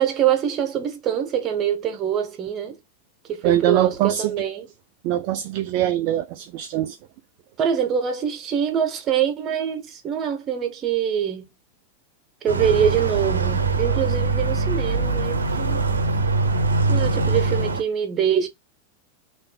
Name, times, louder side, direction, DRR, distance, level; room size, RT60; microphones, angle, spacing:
voice 1, 0.0-2.8 3.3-4.7 7.6-11.5 12.4-15.8 16.9-18.5, right 8 dB, 30° right, 1.0 m, -24 dB
voice 2, 3.4-4.3 5.0-7.0, right 12 dB, 45° right, 0.3 m, -23 dB
sound 1, 12.5-17.8, right 3 dB, 75° right, 0.8 m, -22 dB
3.5 x 2.6 x 2.3 m
figure-of-eight pair, 90°, 0 cm